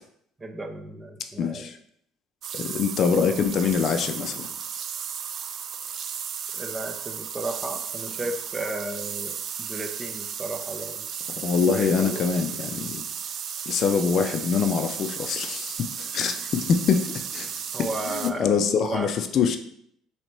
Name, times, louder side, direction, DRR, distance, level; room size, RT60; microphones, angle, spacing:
voice 1, 0.4-1.7 6.5-11.1 11.6-12.2 17.7-18.4 18.8-19.1, right 2 dB, 25° right, 5 dB, 0.7 m, -34 dB
voice 2, 1.4-1.8 2.5-4.5 11.4-13.0 13.7-17.5 17.8-19.6, left 6 dB, 50° left, 6 dB, 0.5 m, -24 dB
sound 1, 2.4-18.3, right 8 dB, 55° right, 0.3 m, -34 dB
3.2 x 2.9 x 4.4 m, 0.69 s
hypercardioid pair, 65°, 0 cm